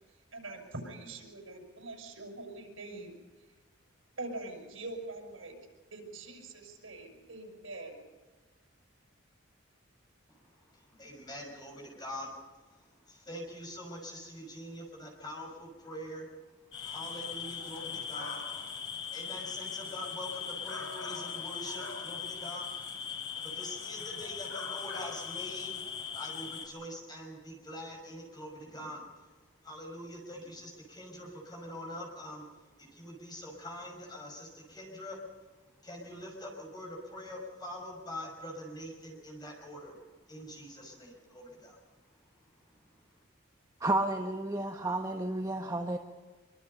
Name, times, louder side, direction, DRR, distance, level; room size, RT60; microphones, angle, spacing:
voice 1, 0.3-3.1 4.2-5.5 5.9-8.0, right 2 dB, 85° right, 3 dB, 6.5 m, -43 dB
voice 2, 10.3-25.8 26.1-43.1, equal, 20° left, 1 dB, 6.0 m, -45 dB
sound 1, 16.7-26.7, left 6 dB, 90° left, 4.8 m, -39 dB
voice 3, 43.8-46.0, right 2 dB, 15° right, 3 dB, 1.2 m, -31 dB
24.5 x 24.5 x 5.5 m, 1.3 s
head